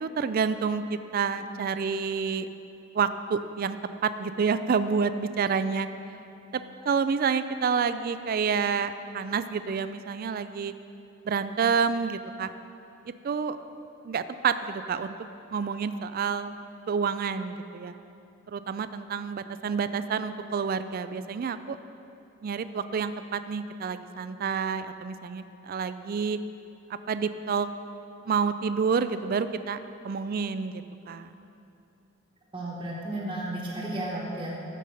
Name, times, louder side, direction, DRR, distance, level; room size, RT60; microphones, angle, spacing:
voice 1, 0.0-2.5 2.9-3.8 4.0-5.9 6.9-10.7 11.3-12.5 13.2-13.6 14.0-15.1 15.5-16.6 16.9-17.9 18.5-21.8 22.4-26.4 26.9-27.7 28.3-29.8 30.0-31.3, right 6 dB, 45° right, 12 dB, 0.3 m, -28 dB
voice 2, 32.5-34.5, right 1 dB, 25° right, -6 dB, 1.2 m, -33 dB
13.5 x 5.4 x 6.4 m, 2.7 s
head